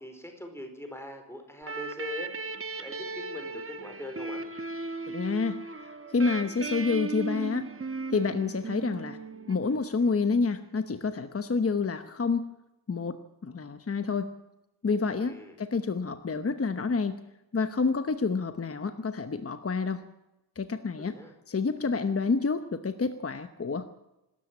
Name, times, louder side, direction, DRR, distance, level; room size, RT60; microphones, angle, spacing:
voice 1, 0.0-2.3 2.8-4.4 15.2-15.6 21.0-21.3, left 1 dB, 5° left, 5 dB, 4.5 m, -42 dB
sound 1, 1.6-10.1, right 3 dB, 35° right, 1.3 m, -37 dB
voice 2, 5.1-7.7 8.1-9.2 9.5-12.5 12.9-14.3 14.8-17.2 17.5-20.0 20.6-21.1 21.5-23.9, left 4 dB, 35° left, 9 dB, 1.0 m, -28 dB
25.5 x 13.0 x 8.6 m, 0.94 s
wide cardioid pair, 145°, 39 cm